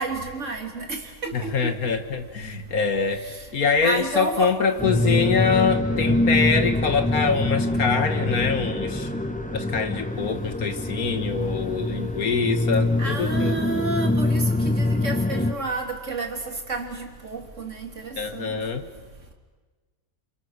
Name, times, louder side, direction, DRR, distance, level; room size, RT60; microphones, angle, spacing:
voice 1, 0.0-1.5 3.2-3.4 3.8-4.5 13.0-18.5, right 3 dB, 50° right, 3.4 m, -30 dB
voice 2, 1.3-3.2 3.5-9.1 9.5-13.6 18.2-18.9, left 5 dB, 70° left, 2.0 m, -24 dB
sound 1, 4.8-15.5, left 1 dB, 5° left, 1.1 m, -24 dB
29.5 x 26.5 x 6.6 m
omnidirectional pair, 1.6 m